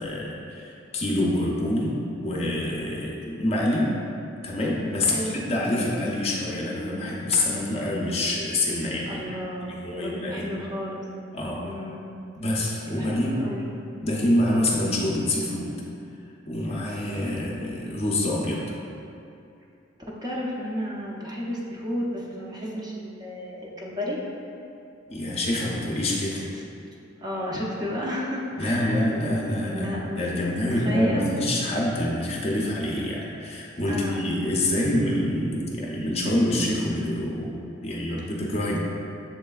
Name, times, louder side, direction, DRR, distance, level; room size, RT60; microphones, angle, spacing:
voice 1, 0.0-3.9 4.4-9.2 9.8-10.5 11.3-11.6 12.4-13.5 14.0-15.7 16.5-18.6 25.1-26.4 28.6-37.5 37.8-38.8, left 1 dB, 30° left, -3 dB, 0.5 m, -26 dB
voice 2, 5.1-5.4 9.1-11.0 11.6-12.0 12.9-13.7 20.1-24.2 26.3-26.4 27.2-29.0 29.7-30.2 30.7-31.3 33.9-34.2, equal, 20° right, -4 dB, 0.5 m, -32 dB
7.2 x 3.2 x 2.3 m, 2.7 s
head